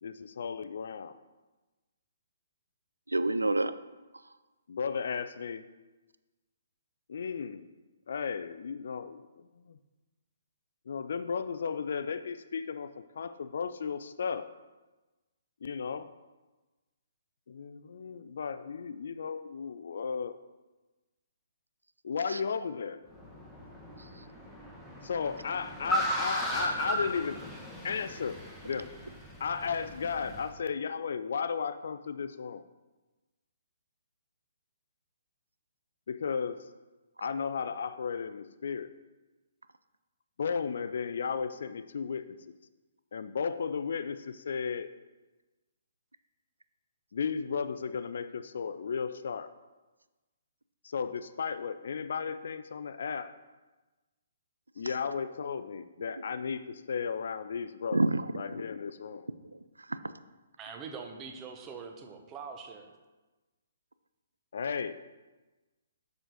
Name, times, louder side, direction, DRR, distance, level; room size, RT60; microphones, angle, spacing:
voice 1, 0.0-1.2 4.7-5.7 7.1-7.6 8.1-9.3 9.6-9.8 10.9-12.9 13.2-14.5 15.6-16.1 17.5-20.4 22.0-23.0 25.0-27.4 27.8-28.9 29.4-32.6 36.1-36.6 37.2-38.9 40.4-42.4 43.1-44.9 47.1-49.5 50.8-53.3 54.8-58.0 58.4-59.3 64.5-65.0, left 6 dB, 55° left, 13 dB, 0.4 m, -34 dB
voice 2, 3.1-3.7 22.3-22.4 54.8-54.9 57.9-58.3 59.4-60.0, right 2 dB, 75° right, 12 dB, 0.4 m, -29 dB
Car, 23.1-30.5, equal, 5° left, 1.2 m, -36 dB
voice 3, 60.6-62.9, right 5 dB, 20° right, 4 dB, 0.9 m, -43 dB
7.7 x 6.4 x 4.0 m, 1.2 s
figure-of-eight pair, 130°, 0 cm